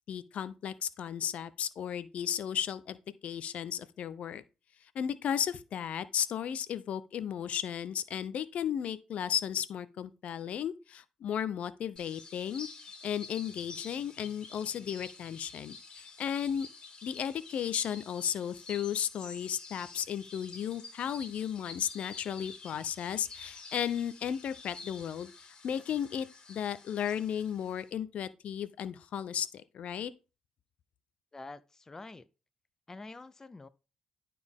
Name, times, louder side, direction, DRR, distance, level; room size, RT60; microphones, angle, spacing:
voice 1, 0.1-3.0 3.2-4.4 4.9-12.7 13.0-16.7 17.0-30.1, left 9 dB, 65° left, 0.6 m, -34 dB
sound 1, 12.0-27.9, left 4 dB, 40° left, 2.0 m, -49 dB
voice 2, 31.3-32.3 32.9-33.7, left 3 dB, 20° left, 0.5 m, -47 dB
11.5 x 4.2 x 3.6 m
cardioid pair, 80°, 2 cm